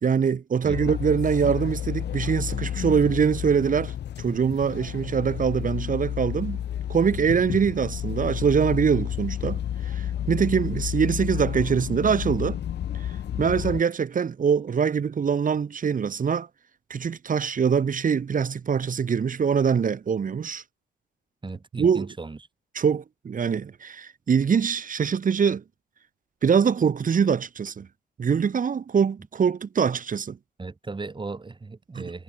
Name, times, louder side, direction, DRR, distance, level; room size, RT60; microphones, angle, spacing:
voice 1, 0.0-3.9 4.2-6.6 6.9-12.6 13.4-16.5 16.9-20.6 21.8-22.1 22.7-25.6 26.4-27.9 28.2-30.4 32.0-32.1, right 6 dB, 45° right, 2.3 m, -23 dB
sound 1, 0.7-13.8, left 10 dB, 60° left, 1.1 m, -31 dB
voice 2, 21.4-22.4 30.6-32.2, right 3 dB, 25° right, 4.6 m, -36 dB
cardioid pair, 90°, 20 cm